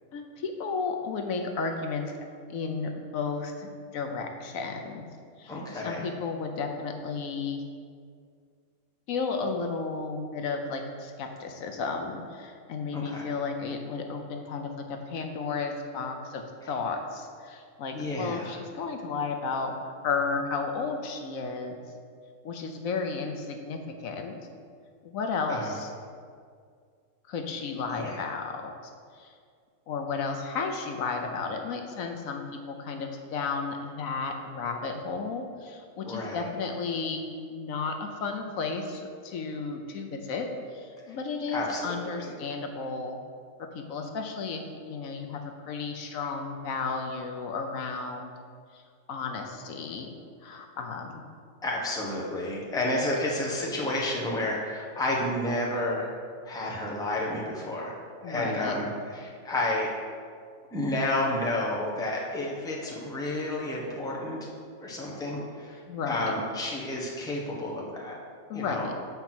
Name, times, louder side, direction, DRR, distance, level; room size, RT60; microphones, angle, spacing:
voice 1, 0.1-2.2 2.5-5.0 5.4-7.6 9.1-19.7 20.0-21.8 22.4-24.4 25.0-25.9 27.3-28.7 29.1-29.3 29.9-43.2 43.7-45.4 45.7-48.3 48.7-48.8 49.1-50.1 50.4-51.2 58.2-58.7 65.9-66.3 68.5-68.9, left 4 dB, 75° left, 4 dB, 1.1 m, -33 dB
voice 2, 5.5-6.1 12.9-13.3 17.9-18.6 25.5-25.7 27.9-28.3 36.0-36.5 41.1-41.2 41.5-42.3 51.6-56.1 56.4-59.9 60.7-64.4 64.8-65.8 66.1-68.2 68.5-68.9, left 1 dB, 5° left, -3 dB, 0.8 m, -31 dB
7.3 x 4.5 x 5.9 m, 2.1 s
omnidirectional pair, 1.5 m